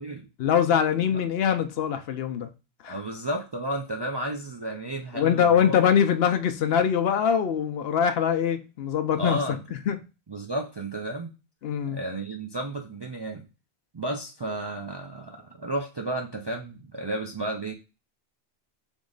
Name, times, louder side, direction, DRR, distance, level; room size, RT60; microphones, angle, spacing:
voice 1, 0.4-2.5 2.8-3.0 5.1-9.4 9.9-10.0 11.6-12.0, left 8 dB, 70° left, 0.8 m, -23 dB
voice 2, 0.9-1.3 2.9-5.7 9.2-9.6 10.3-11.3 11.9-13.4 13.9-17.7, right 1 dB, 40° right, 0.4 m, -32 dB
3.6 x 3.1 x 3.8 m
omnidirectional pair, 1.1 m